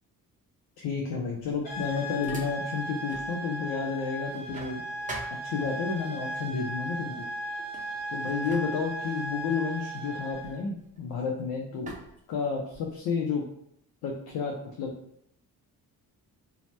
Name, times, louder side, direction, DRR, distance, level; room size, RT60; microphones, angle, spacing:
voice 1, 0.8-4.8 5.4-7.2 8.1-12.0 12.3-13.4 14.0-14.9, left 5 dB, 85° left, 0 dB, 0.5 m, -31 dB
sound 1, 1.3-3.3 3.7-6.0 6.9-7.1 7.5-11.3 11.9-13.0, right 2 dB, 20° right, 0.5 m, -46 dB
sound 2, 1.6-10.6, right 1 dB, 60° left, 1.2 m, -36 dB
2.8 x 2.0 x 3.1 m, 0.76 s
cardioid pair, 95°, 36 cm